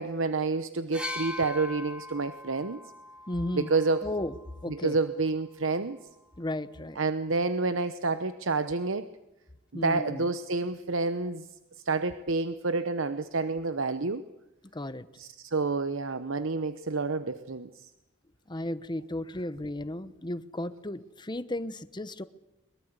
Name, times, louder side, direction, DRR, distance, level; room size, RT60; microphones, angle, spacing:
voice 1, 0.0-2.8 3.5-4.1 4.7-6.0 7.0-9.1 9.8-11.5 11.8-14.2 15.2-17.9, right 3 dB, 70° right, 11 dB, 0.9 m, -29 dB
sound 1, 0.9-4.7 5.8-5.9, left 2 dB, 5° right, 2.8 m, -41 dB
voice 2, 3.3-3.7 4.0-4.3 4.6-5.0 6.4-7.0 9.7-10.3 14.7-15.1 18.5-22.2, left 1 dB, 20° left, 13 dB, 1.0 m, -34 dB
22.5 x 22.5 x 8.2 m, 0.96 s
head